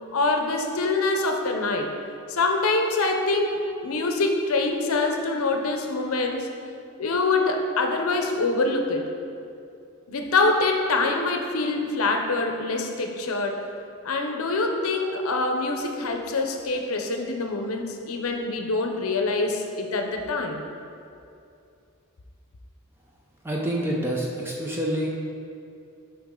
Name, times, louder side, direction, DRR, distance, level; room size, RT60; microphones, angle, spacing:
voice 1, 0.1-1.9 2.3-6.5 7.0-9.1 10.1-13.6 14.0-20.6, left 3 dB, 70° left, 4 dB, 0.6 m, -25 dB
voice 2, 23.4-25.1, right 1 dB, 10° right, -2 dB, 0.5 m, -27 dB
7.1 x 4.7 x 3.7 m, 2.5 s
head